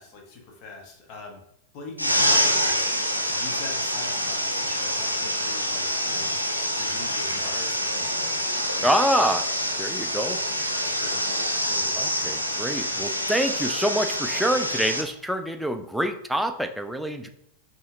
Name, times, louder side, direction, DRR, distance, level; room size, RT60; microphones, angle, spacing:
voice 1, 0.0-1.4 1.7-2.8 3.3-8.4 8.7-8.9 10.3-10.4 10.8-11.3 11.7-12.0, left 3 dB, 40° left, 1 dB, 1.1 m, -43 dB
sound 1, 2.0-15.0, equal, 90° right, 0.5 m, -26 dB
voice 2, 8.8-9.5 9.8-10.4 12.0-17.3, equal, ahead, 7 dB, 0.4 m, -26 dB
5.5 x 3.0 x 2.7 m, 0.75 s
figure-of-eight pair, 90°, 0 cm